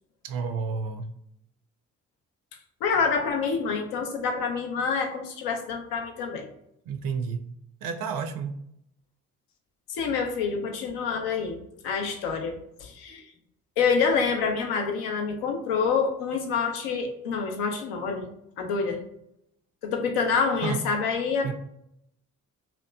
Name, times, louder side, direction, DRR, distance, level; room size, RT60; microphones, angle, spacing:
voice 1, 0.2-1.1 6.9-7.4 7.8-8.5 20.6-20.8 21.4-21.5, right 5 dB, 60° right, 6 dB, 0.5 m, -30 dB
voice 2, 2.8-6.5 9.9-11.6 11.8-13.2 13.8-18.3 18.6-19.0 19.8-21.5, left 5 dB, 75° left, 4 dB, 0.6 m, -27 dB
2.9 x 2.1 x 2.2 m, 0.75 s
hypercardioid pair, 40°, 39 cm